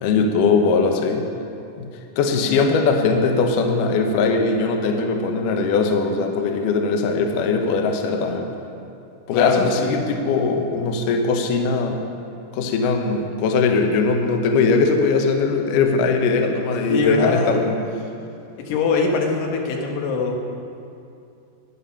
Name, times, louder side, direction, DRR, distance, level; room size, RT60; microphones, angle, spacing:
voice 1, 0.0-1.3 1.8-1.9 2.2-8.5 9.3-12.0 12.5-17.8, left 4 dB, 75° left, 4 dB, 2.1 m, -20 dB
voice 2, 9.3-10.0 16.9-17.6 18.6-20.4, left 4 dB, 90° left, 1 dB, 3.2 m, -22 dB
11.5 x 10.0 x 5.6 m, 2.6 s
omnidirectional pair, 4.6 m